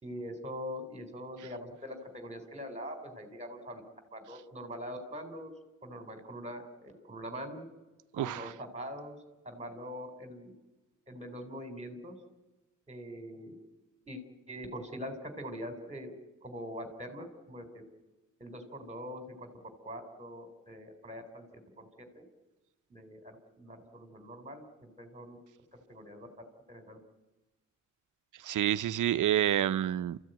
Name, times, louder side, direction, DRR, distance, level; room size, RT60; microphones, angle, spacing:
voice 1, 0.0-3.8 4.1-5.5 5.8-7.7 8.1-9.2 9.5-10.5 11.1-12.2 12.9-13.5 14.1-14.2 14.5-16.1 16.4-17.8 18.4-19.5 19.9-21.5 21.8-21.9 22.1-22.3 22.9-25.4 25.7-26.3 26.7-27.0, equal, 20° right, 3.5 m, -43 dB
voice 2, 8.2-8.5 28.4-30.2, right 11 dB, 80° right, 0.7 m, -28 dB
30.0 x 14.5 x 9.0 m
wide cardioid pair, 155°, 30 cm